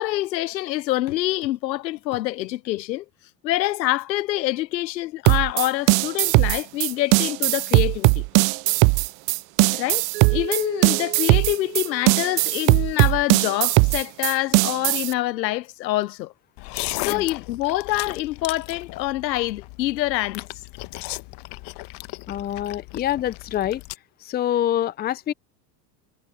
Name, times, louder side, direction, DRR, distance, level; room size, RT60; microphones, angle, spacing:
voice 1, 0.0-3.0 3.4-8.2 9.7-16.3 17.0-20.5, left 16 dB, 90° left, 0.9 m, -26 dB
sound 1, 5.3-15.1, right 27 dB, 45° right, 0.4 m, -19 dB
Mallet percussion, 10.1-13.0, right 23 dB, 75° right, 5.8 m, -36 dB
sound 2, 16.6-24.0, left 23 dB, 55° left, 1.2 m, -36 dB
voice 2, 22.3-23.8 24.2-25.3, left 11 dB, 20° left, 0.5 m, -26 dB
hypercardioid pair, 95°, 50 cm